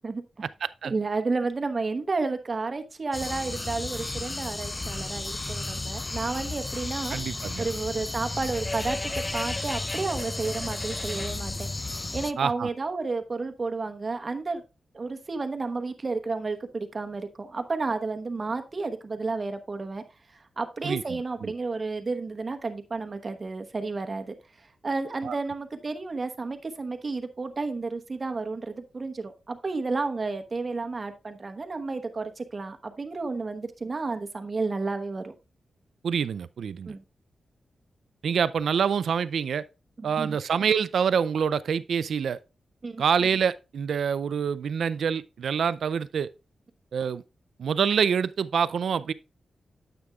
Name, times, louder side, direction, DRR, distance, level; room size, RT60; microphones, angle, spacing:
voice 1, 0.8-7.2 7.6-11.7 12.1-14.6 14.9-20.0 20.6-35.3 36.9-37.0 40.0-40.4 42.8-43.0, right 3 dB, 35° right, 1.0 m, -31 dB
sound 1, 3.1-12.3, left 2 dB, 20° left, 0.3 m, -33 dB
voice 2, 7.1-7.7 12.4-12.7 20.8-21.0 21.4-21.5 25.2-25.3 36.0-36.9 38.2-39.6 40.0-42.4 43.0-46.3 46.9-47.2 47.6-49.1, right 7 dB, 80° right, 0.4 m, -26 dB
9.4 x 8.0 x 2.3 m
wide cardioid pair, 120°, 0 cm